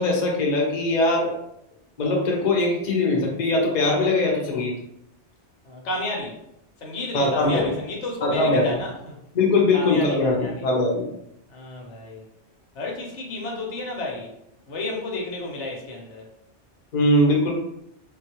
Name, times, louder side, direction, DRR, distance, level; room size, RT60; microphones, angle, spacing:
voice 1, 0.0-1.4 2.0-4.8 7.1-7.7 8.2-8.8 9.3-11.0 16.9-17.5, left 2 dB, 45° left, -1 dB, 0.8 m, -21 dB
voice 2, 5.6-6.4 6.8-9.2 9.7-10.6 11.5-12.2 12.7-14.3 14.7-16.3, left 2 dB, 85° left, 0 dB, 1.1 m, -32 dB
3.7 x 2.3 x 2.9 m, 0.79 s
omnidirectional pair, 1.2 m